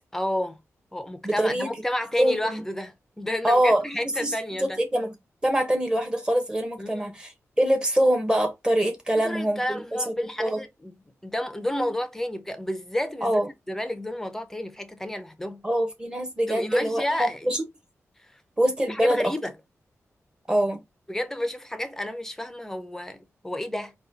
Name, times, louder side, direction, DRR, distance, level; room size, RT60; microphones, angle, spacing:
voice 1, 0.1-0.6 0.9-4.8 6.8-7.1 9.2-10.9 11.2-13.4 13.7-15.6 16.5-17.5 18.3-18.4 18.9-19.5 21.1-23.9, left 1 dB, 10° left, 0.6 m, -31 dB
voice 2, 1.2-1.7 2.2-2.6 3.4-5.1 5.4-7.3 7.6-9.8 10.4-10.6 13.2-13.5 15.6-17.6 18.6-19.2 20.5-20.8, right 1 dB, 15° right, 1.1 m, -24 dB
4.1 x 2.3 x 3.9 m
wide cardioid pair, 130°, 5 cm